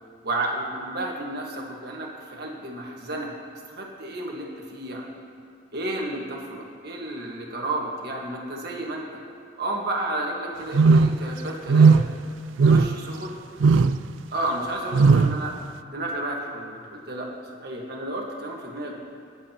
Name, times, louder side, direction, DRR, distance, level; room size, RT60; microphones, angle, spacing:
voice 1, 0.2-3.3 3.7-5.1 5.7-9.2 9.6-11.9 12.6-13.4 14.3-15.5 15.9-17.3 17.6-18.9, right 2 dB, 60° right, -1 dB, 1.6 m, -31 dB
sound 1, 10.7-11.3 11.7-12.2 12.6-13.1 13.6-14.0 14.9-15.4, right 4 dB, 90° right, 0.3 m, -16 dB
22.0 x 7.6 x 3.0 m, 2.2 s
head